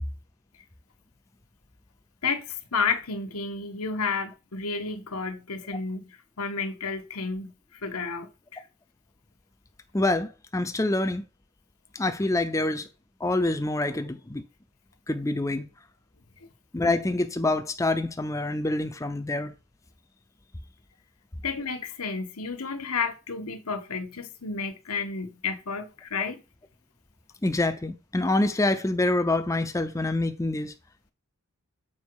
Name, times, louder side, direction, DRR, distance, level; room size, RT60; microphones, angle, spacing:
voice 1, 2.2-7.5 7.8-8.6 21.4-26.4, left 5 dB, 85° left, 1.4 m, -31 dB
voice 2, 9.9-11.2 11.9-12.9 13.2-14.4 15.1-15.7 16.7-19.5 27.4-30.7, left 2 dB, 15° left, 0.6 m, -26 dB
7.2 x 5.1 x 4.7 m
head